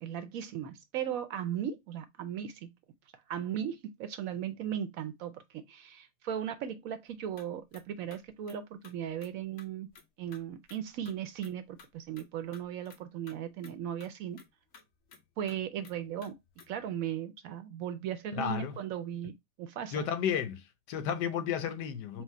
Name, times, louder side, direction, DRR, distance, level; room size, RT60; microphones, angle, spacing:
voice 1, 0.0-2.7 3.3-9.9 10.2-14.4 15.4-16.3 16.7-19.3 19.6-20.0 22.1-22.2, right 9 dB, 70° right, 0.9 m, -37 dB
sound 1, 7.1-7.4 7.7-7.8 8.1-9.3 9.6-10.1 10.3-10.8 11.1-13.0 13.3-13.4 13.6-13.7 14.0-16.9, left 5 dB, 55° left, 1.1 m, -56 dB
voice 2, 18.3-18.8 19.9-22.2, left 8 dB, 90° left, 1.3 m, -33 dB
4.5 x 2.1 x 4.1 m
omnidirectional pair, 1.7 m